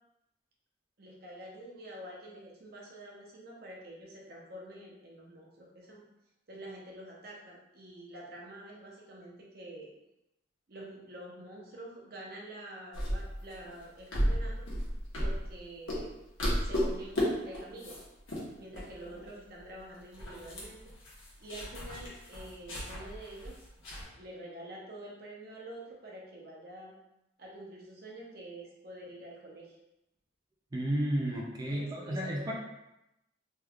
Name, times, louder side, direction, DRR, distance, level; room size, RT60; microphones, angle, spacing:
voice 1, 1.0-6.0 6.5-9.9 10.7-14.7 15.2-16.2 16.6-18.0 18.6-20.9 21.4-23.7 24.1-26.9 27.4-29.8 31.7-32.5, right 1 dB, 50° right, -3 dB, 0.7 m, -47 dB
sound 1, 12.9-15.6 15.9-16.1 16.4-17.3 17.5-18.0 18.3-18.4 18.7-19.3 19.6-19.7 20.0-24.0, equal, 85° left, 1.0 m, -34 dB
voice 2, 30.7-32.5, right 1 dB, 20° right, -1 dB, 0.3 m, -32 dB
3.3 x 3.1 x 2.3 m, 0.89 s
head